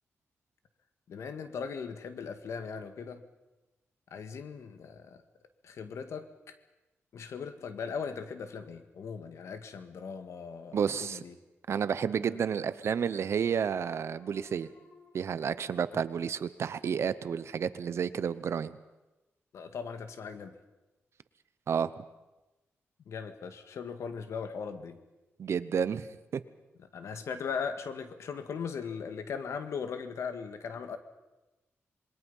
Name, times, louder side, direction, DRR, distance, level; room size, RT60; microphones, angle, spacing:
voice 1, 1.1-3.2 4.1-5.2 5.6-6.6 7.1-11.3 12.2-12.4 19.5-20.6 23.1-25.0 26.9-31.0, left 6 dB, 85° left, 8 dB, 1.9 m, -39 dB
voice 2, 10.7-11.2 11.7-14.7 15.1-18.8 21.7-22.0 25.4-26.4, right 7 dB, 65° right, 14 dB, 0.9 m, -31 dB
sound 1, 11.9-16.9, left 3 dB, 70° left, 7.4 m, -62 dB
27.0 x 22.0 x 5.6 m, 1.0 s
wide cardioid pair, 125°, 5 cm